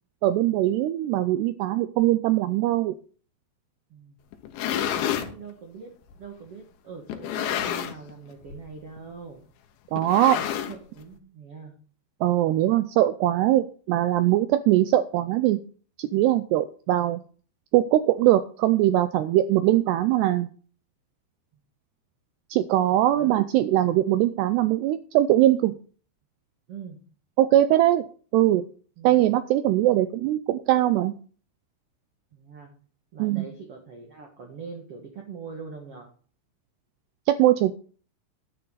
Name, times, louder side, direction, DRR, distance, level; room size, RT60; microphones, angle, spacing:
voice 1, 0.2-2.9 9.9-10.4 12.2-15.6 16.0-17.2 17.7-20.5 22.5-25.8 27.4-28.0 28.3-28.7 29.0-31.2 33.2-33.5 37.3-37.7, right 14 dB, 85° right, 12 dB, 2.4 m, -21 dB
sound 1, 4.3-5.3 6.1-6.2 7.1-8.1 8.4-8.7 9.0-9.1 10.0-11.0, left 10 dB, 80° left, 3.4 m, -29 dB
voice 2, 4.6-9.4 10.3-11.7 23.1-23.4 26.7-27.0 29.0-29.2 32.3-32.7 33.1-36.1, right 5 dB, 50° right, 2 dB, 1.8 m, -43 dB
12.0 x 11.0 x 4.0 m, 0.41 s
omnidirectional pair, 5.4 m